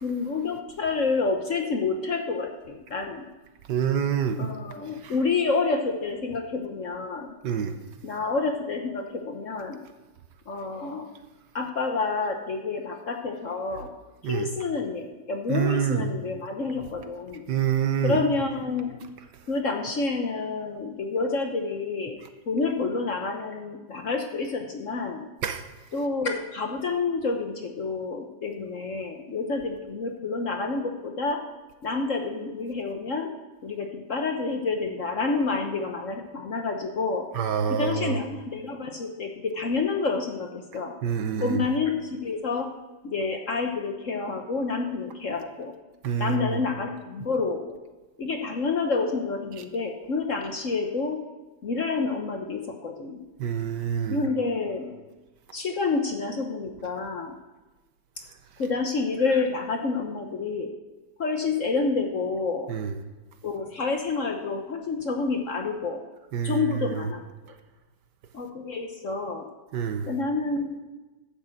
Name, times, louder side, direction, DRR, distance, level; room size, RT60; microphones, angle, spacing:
voice 1, 0.0-3.2 4.4-7.3 8.0-9.8 10.5-11.0 11.5-13.9 14.2-17.4 18.0-19.0 19.5-22.2 22.5-25.2 25.9-31.4 31.8-33.3 33.6-37.3 37.7-40.9 41.4-42.7 43.0-45.7 46.2-47.7 48.2-51.2 51.6-53.2 54.1-54.9 55.5-57.3 58.6-60.7 61.2-62.7 63.4-66.0 66.4-67.2 67.5-67.6 68.3-69.5 70.1-70.8, left 4 dB, 50° left, 4 dB, 1.1 m, -28 dB
voice 2, 3.7-4.5 5.0-5.1 7.4-7.8 14.2-14.5 15.5-16.1 17.5-18.2 25.4-25.6 37.4-38.2 41.0-41.6 46.0-46.6 53.4-54.2 62.7-62.9 66.3-67.0 69.7-70.1, right 8 dB, 65° right, 8 dB, 1.4 m, -26 dB
12.0 x 6.1 x 7.7 m, 1.1 s
omnidirectional pair, 2.1 m